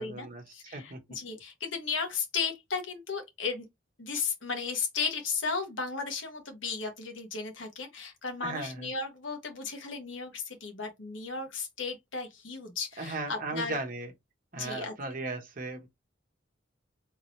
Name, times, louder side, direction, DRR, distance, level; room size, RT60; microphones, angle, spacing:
voice 1, 0.0-0.4 0.7-1.0 8.4-8.9 13.0-14.1 14.5-15.9, right 2 dB, 45° right, 1.0 m, -36 dB
voice 2, 0.5-3.6 4.0-13.8 14.6-14.9, left 5 dB, 85° left, 1.2 m, -35 dB
3.7 x 2.7 x 3.1 m
head